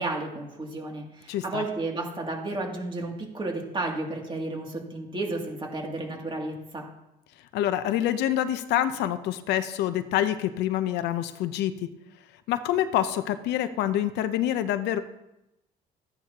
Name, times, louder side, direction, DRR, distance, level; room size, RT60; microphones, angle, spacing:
voice 1, 0.0-6.9, right 2 dB, 30° right, 0 dB, 2.7 m, -32 dB
voice 2, 1.3-1.6 7.5-11.9 12.5-15.0, left 12 dB, 85° left, 10 dB, 0.8 m, -26 dB
14.0 x 9.9 x 3.0 m, 0.89 s
cardioid pair, 110°, 17 cm